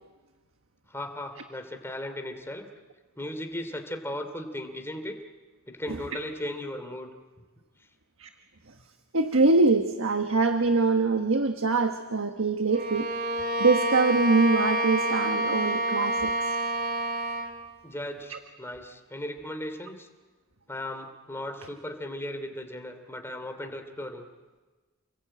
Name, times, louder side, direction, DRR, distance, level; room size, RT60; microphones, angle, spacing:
voice 1, 0.9-2.7 3.1-5.2 5.7-7.1 17.8-20.1 20.7-24.3, left 1 dB, 10° left, 6 dB, 2.8 m, -37 dB
voice 2, 9.1-13.1 13.6-16.5 18.3-18.4, right 3 dB, 80° right, 6 dB, 1.4 m, -23 dB
Bowed string instrument, 12.7-17.6, right 1 dB, 50° right, 3.7 m, -28 dB
29.5 x 21.0 x 8.9 m, 1.3 s
head